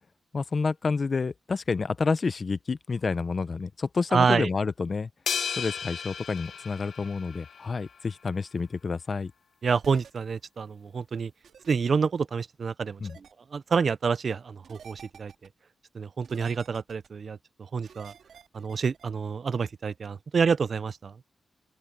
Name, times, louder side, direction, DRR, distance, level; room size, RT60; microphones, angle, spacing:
voice 1, 0.3-5.1 5.6-9.3 13.0-13.2, left 4 dB, 40° left, 0.7 m, -29 dB
voice 2, 4.1-4.5 9.6-11.3 11.7-13.0 13.5-15.3 15.9-17.4 17.7-18.1 18.5-21.1, right 5 dB, 50° right, 0.5 m, -27 dB
sound 1, 5.3-7.8, left 7 dB, 70° left, 1.3 m, -34 dB
sound 2, 9.8-10.1 11.4-11.7 13.0-13.3 14.6-15.5 16.2-17.1 17.8-19.1, right 7 dB, 90° right, 2.7 m, -50 dB
open air
wide cardioid pair, 150°, 0 cm